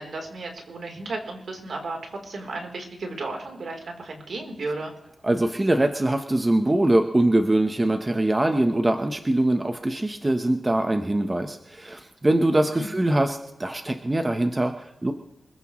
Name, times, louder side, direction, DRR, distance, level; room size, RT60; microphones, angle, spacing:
voice 1, 0.0-4.9 12.7-12.9, right 2 dB, 65° right, 2 dB, 3.7 m, -34 dB
voice 2, 5.2-15.1, right 1 dB, 20° right, 6 dB, 1.0 m, -23 dB
25.0 x 15.5 x 3.2 m, 0.85 s
wide cardioid pair, 95°, 0 cm